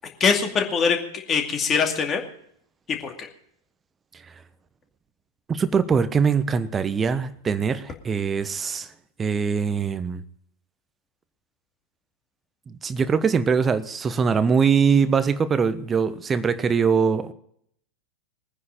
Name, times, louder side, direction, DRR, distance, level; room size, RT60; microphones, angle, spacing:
voice 1, 0.2-2.2 2.9-3.3, left 6 dB, 25° left, 2.4 m, -23 dB
voice 2, 5.5-8.9 9.2-10.2 12.7-17.3, right 6 dB, 20° right, 1.0 m, -22 dB
21.5 x 9.8 x 5.2 m
figure-of-eight pair, 90°, 0 cm